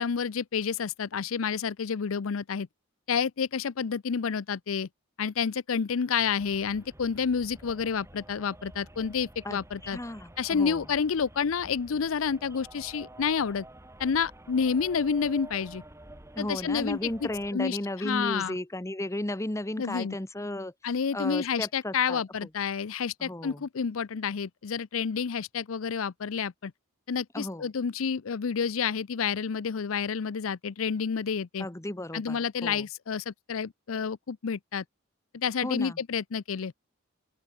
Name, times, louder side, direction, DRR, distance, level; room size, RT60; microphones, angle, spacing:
voice 1, 0.0-2.7 3.1-4.9 5.2-10.0 10.4-13.7 14.0-15.8 16.4-18.6 19.8-20.1 20.8-26.7 27.1-31.7 32.1-34.8 35.3-36.7, left 6 dB, 75° left, 0.5 m, -29 dB
sound 1, 6.4-17.5, right 1 dB, 15° right, 2.2 m, -49 dB
voice 2, 9.4-10.8 16.4-20.7 21.1-22.2 23.2-23.6 27.3-27.7 31.6-32.8 35.6-36.0, left 1 dB, 15° left, 1.0 m, -34 dB
open air
head